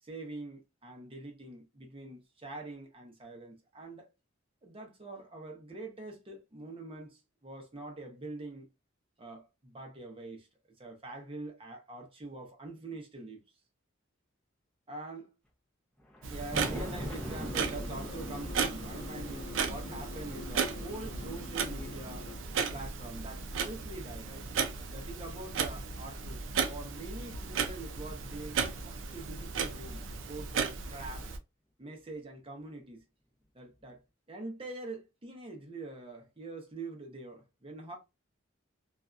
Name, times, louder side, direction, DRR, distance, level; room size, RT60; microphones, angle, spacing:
voice 1, 0.0-4.1 4.6-8.7 9.2-10.5 10.8-13.4 14.9-15.3 16.3-22.3 22.7-24.5 24.9-31.3 31.8-33.0 33.5-34.0 34.3-38.0, right 2 dB, 30° right, 0.7 m, -44 dB
Thunder, 16.0-24.6 25.2-26.9 28.1-28.2 28.7-28.8 30.7-30.8 32.1-32.2 33.8-33.9, equal, 5° left, 0.7 m, -46 dB
Clock, 16.2-31.4, right 5 dB, 70° right, 0.5 m, -35 dB
sound 1, 16.7-22.4, left 2 dB, 40° left, 0.7 m, -46 dB
2.7 x 2.3 x 2.3 m
head